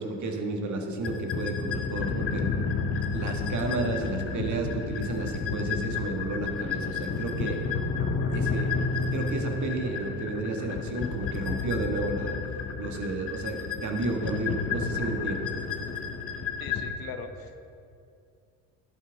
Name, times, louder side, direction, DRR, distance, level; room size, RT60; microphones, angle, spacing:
voice 1, 0.0-2.5 3.1-7.6 8.3-8.7 9.1-12.4 12.8-15.5, right 3 dB, 45° right, 3 dB, 1.7 m, -32 dB
sound 1, 1.0-16.9, left 5 dB, 35° left, 1.0 m, -31 dB
voice 2, 16.6-17.6, left 6 dB, 55° left, 7 dB, 1.1 m, -40 dB
11.0 x 9.2 x 3.5 m, 2.4 s
hypercardioid pair, 70°, 42 cm